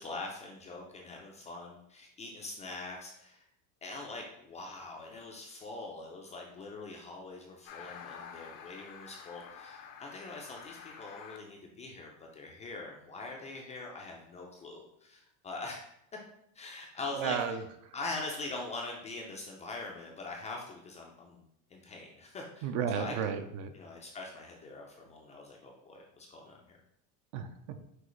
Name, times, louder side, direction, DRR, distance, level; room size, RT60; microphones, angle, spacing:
voice 1, 0.0-3.4 3.8-15.9 16.5-17.4 17.9-21.4 21.7-23.4 23.7-26.8, left 3 dB, 20° left, 0 dB, 0.4 m, -43 dB
sound 1, 7.7-11.4, left 7 dB, 75° left, 0.7 m, -49 dB
voice 2, 17.2-17.9 22.6-23.7 27.3-27.8, right 7 dB, 45° right, 8 dB, 0.5 m, -34 dB
6.1 x 2.4 x 3.1 m, 0.76 s
supercardioid pair, 140°, 40 cm